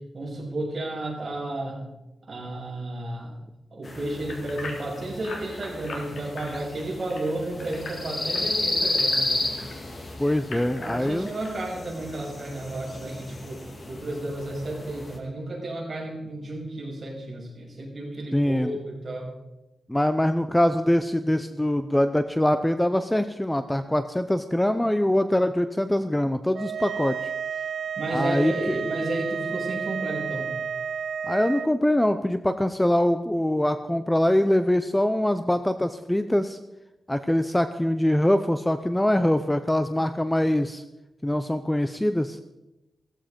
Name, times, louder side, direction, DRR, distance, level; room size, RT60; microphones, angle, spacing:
voice 1, 0.1-1.9 2.3-3.4 3.7-9.5 10.8-19.3 28.0-30.6, right 1 dB, 40° right, -3 dB, 6.8 m, -32 dB
sound 1, 3.8-15.2, left 2 dB, 35° left, 2.6 m, -32 dB
sound 2, 4.3-9.7 10.2-11.6 12.1-12.2 12.7-12.8, left 3 dB, 80° left, 3.6 m, -40 dB
voice 2, 10.2-11.3 18.3-18.8 19.9-27.3 28.1-28.8 31.2-36.6 37.1-40.8 41.2-42.4, left 1 dB, 5° left, 10 dB, 0.6 m, -23 dB
sound 3, 26.5-31.7, right 7 dB, 80° right, 0.7 m, -31 dB
16.5 x 15.0 x 5.2 m, 0.97 s
wide cardioid pair, 145°, 0 cm